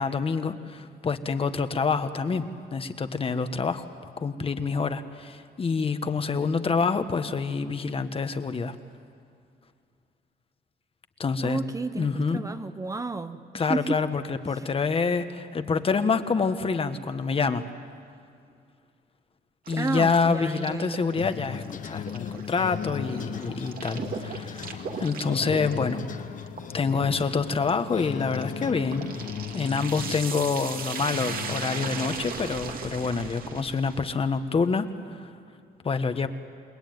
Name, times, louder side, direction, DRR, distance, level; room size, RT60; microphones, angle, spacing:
voice 1, 0.0-3.9 4.2-8.8 11.2-11.6 11.9-12.4 13.5-17.6 19.7-26.0 26.7-29.1 29.5-35.3 35.8-36.3, left 5 dB, 35° left, 9 dB, 1.3 m, -27 dB
voice 2, 11.4-13.4 13.7-14.0 14.5-14.7 19.8-21.1, right 3 dB, 20° right, 10 dB, 0.8 m, -31 dB
sound 1, 19.7-34.1, right 5 dB, 55° right, 2.3 m, -38 dB
sound 2, 21.2-32.2, left 8 dB, 50° left, 1.0 m, -37 dB
29.0 x 20.5 x 9.4 m, 2.3 s
cardioid pair, 120°, 17 cm